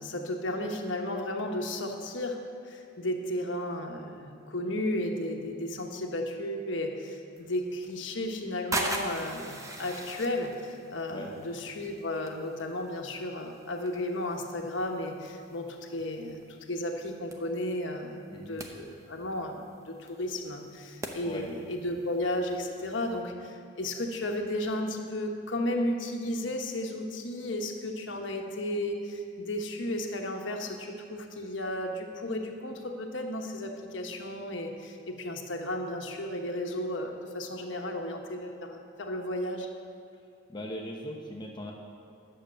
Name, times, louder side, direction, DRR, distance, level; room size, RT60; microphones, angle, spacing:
voice 1, 0.0-39.7, left 1 dB, 75° left, 2 dB, 1.2 m, -34 dB
sound 1, 7.4-23.2, right 2 dB, 15° right, 0.7 m, -42 dB
voice 2, 40.5-41.7, equal, 25° left, 0 dB, 0.9 m, -39 dB
11.0 x 6.7 x 7.7 m, 2.4 s
head